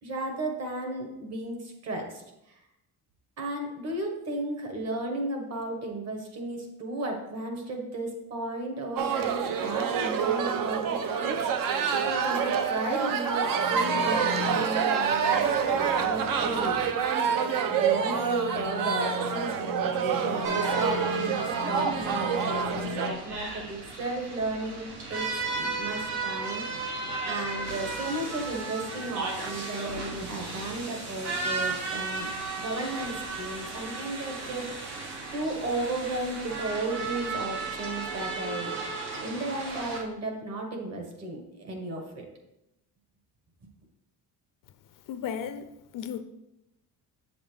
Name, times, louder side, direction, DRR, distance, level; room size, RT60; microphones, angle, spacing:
voice 1, 0.0-2.6 3.4-11.7 11.9-17.0 17.7-35.0 35.3-38.8 39.2-42.2, right 2 dB, 40° right, 1.5 m, -34 dB
sound 1, 9.0-23.1, right 7 dB, 60° right, 0.7 m, -27 dB
sound 2, 13.5-23.1, left 8 dB, 5° right, 0.5 m, -40 dB
sound 3, 20.4-40.0, right 3 dB, 90° right, 2.3 m, -35 dB
voice 2, 45.0-46.2, left 8 dB, 55° left, 0.5 m, -35 dB
8.0 x 7.1 x 3.4 m
cardioid pair, 170°, 38 cm